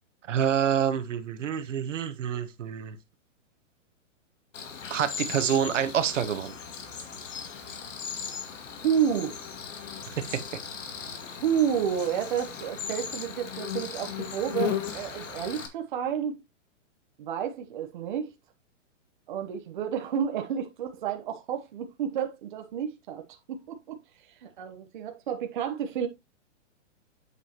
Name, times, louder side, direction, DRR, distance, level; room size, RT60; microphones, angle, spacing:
voice 1, 0.3-3.0 4.9-6.5 10.2-10.4, right 8 dB, 75° right, 1.3 m, -27 dB
Cricket, 4.5-15.7, left 7 dB, 75° left, 2.2 m, -37 dB
voice 2, 8.8-9.3 11.4-16.4 17.2-18.3 19.3-24.0 24.4-26.1, right 8 dB, 40° right, 1.0 m, -30 dB
8.1 x 5.5 x 2.9 m
hypercardioid pair, 170°, 37 cm